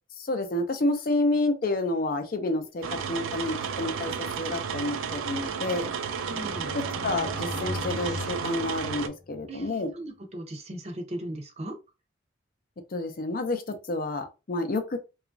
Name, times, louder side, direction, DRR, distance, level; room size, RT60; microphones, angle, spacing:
voice 1, 0.2-5.9 6.7-9.9 12.9-15.0, left 2 dB, 45° left, 0.4 m, -29 dB
sound 1, 2.8-9.1, right 6 dB, 90° right, 0.4 m, -32 dB
sound 2, 5.8-9.5, left 2 dB, 20° left, 0.8 m, -39 dB
voice 2, 6.1-6.7 9.5-11.7, right 1 dB, 35° right, 0.5 m, -38 dB
2.9 x 2.3 x 2.5 m
head